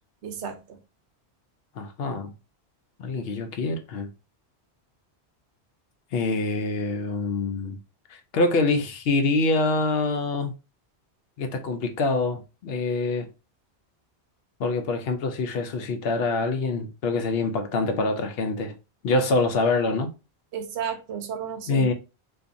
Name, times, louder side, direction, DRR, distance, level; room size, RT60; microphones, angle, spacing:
voice 1, 0.2-0.8 20.5-21.9, right 7 dB, 85° right, 0.9 m, -33 dB
voice 2, 1.8-2.3 3.0-4.1 6.1-7.8 8.1-10.5 11.4-13.3 14.6-18.7 19.0-20.1 21.7-21.9, left 3 dB, 65° left, 0.7 m, -25 dB
2.6 x 2.4 x 2.5 m
omnidirectional pair, 1.1 m